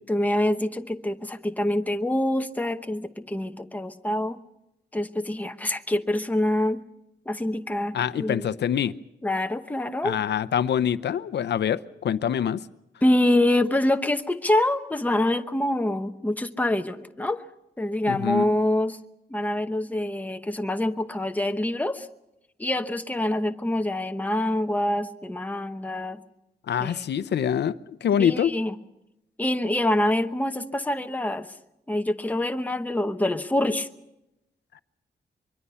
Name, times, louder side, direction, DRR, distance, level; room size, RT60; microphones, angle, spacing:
voice 1, 0.1-4.4 4.9-6.8 7.3-8.5 9.2-10.2 13.0-17.4 17.8-19.0 19.3-22.1 22.6-26.2 26.8-27.0 28.2-28.8 29.4-31.5 31.9-33.9, left 1 dB, 10° left, 0.9 m, -25 dB
voice 2, 7.9-8.9 10.0-12.6 18.1-18.4 26.7-27.7 28.0-28.5, left 9 dB, 80° left, 0.8 m, -25 dB
24.0 x 23.5 x 5.7 m
wide cardioid pair, 175°, 17 cm